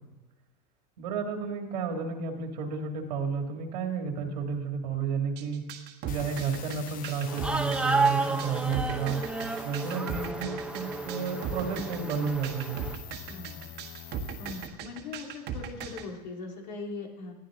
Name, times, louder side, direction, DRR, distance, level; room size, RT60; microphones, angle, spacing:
voice 1, 1.0-5.6 6.0-9.2 9.6-12.8, right 6 dB, 85° right, 3 dB, 2.4 m, -32 dB
sound 1, 5.4-16.1, right 8 dB, 50° right, 1.4 m, -38 dB
sound 2, 6.1-14.7, left 10 dB, 40° left, 0.8 m, -46 dB
sound 3, 7.3-13.0, right 3 dB, 5° right, 0.8 m, -31 dB
voice 2, 14.4-17.3, left 4 dB, 85° left, 1 dB, 2.8 m, -40 dB
19.5 x 11.5 x 3.8 m, 1.1 s
supercardioid pair, 115°, 21 cm